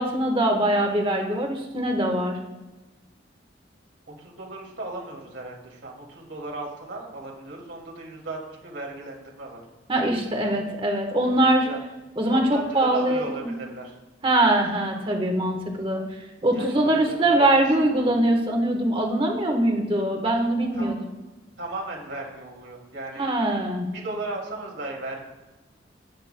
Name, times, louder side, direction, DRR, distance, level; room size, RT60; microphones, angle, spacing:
voice 1, 0.0-2.4 9.9-11.7 12.2-13.5 14.2-16.0 16.4-20.9 23.2-23.9, right 1 dB, 30° right, 2 dB, 1.3 m, -22 dB
voice 2, 4.2-9.6 11.3-11.8 12.3-14.0 16.5-17.5 17.8-18.0 20.7-21.1 21.6-23.3 23.9-25.2, right 2 dB, 75° right, -2 dB, 2.5 m, -36 dB
12.5 x 9.3 x 2.2 m, 1.1 s
head